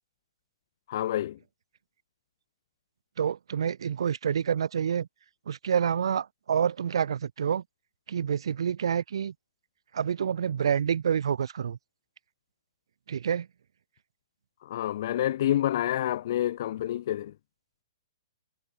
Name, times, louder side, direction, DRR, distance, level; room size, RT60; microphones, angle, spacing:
voice 1, 0.9-1.4 14.6-17.3, left 12 dB, 45° left, 1.1 m, -28 dB
voice 2, 3.2-5.1 5.5-7.6 8.1-9.3 9.9-11.8 13.1-13.5, right 8 dB, 80° right, 1.3 m, -28 dB
hypercardioid pair, 170°, 3 cm